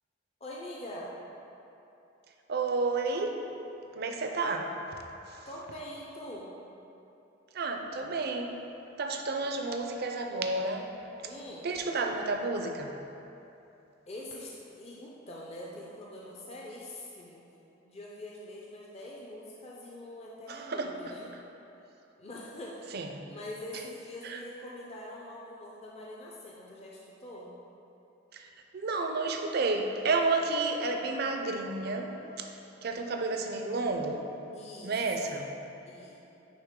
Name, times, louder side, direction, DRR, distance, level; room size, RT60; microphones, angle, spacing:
voice 1, 0.4-1.1 5.5-6.6 11.3-11.7 14.1-17.4 17.8-21.3 22.2-23.0 23.3-27.5 34.5-35.3 35.9-36.2, left 1 dB, 35° left, -4 dB, 0.5 m, -44 dB
voice 2, 2.5-3.4 4.0-4.8 5.3-5.4 7.5-8.6 9.0-10.9 11.6-13.0 20.5-21.0 22.9-23.2 24.2-24.4 28.3-28.5 28.7-32.5 32.8-34.3 34.8-35.5, right 3 dB, 55° right, 4 dB, 0.5 m, -31 dB
8.9 x 3.4 x 3.7 m, 2.9 s
head